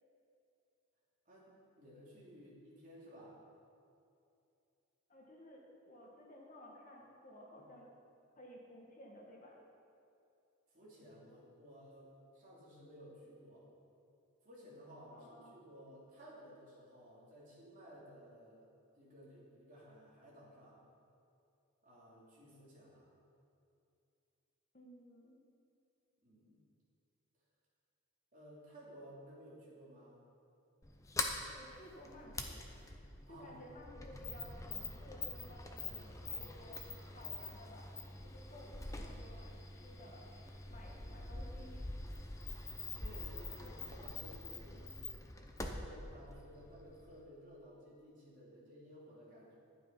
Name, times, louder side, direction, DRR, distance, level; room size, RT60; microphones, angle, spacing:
voice 1, 1.2-3.4 7.5-7.7 10.7-13.7 14.4-18.7 19.0-20.8 21.8-23.1 26.2-26.6 28.3-30.3 33.3-33.6 41.0-41.2 42.5-42.6 43.0-45.2 45.6-49.6, equal, 40° right, -6 dB, 3.2 m, -56 dB
voice 2, 5.1-7.9 8.4-9.6 15.1-15.6 24.7-25.4 31.5-32.9 33.3-36.8 37.1-37.9 38.2-40.3 40.7-41.9, left 1 dB, 35° left, -2 dB, 1.4 m, -56 dB
Sliding door, 30.8-47.2, left 2 dB, 15° left, 0.7 m, -45 dB
11.5 x 9.4 x 5.4 m, 2.6 s
head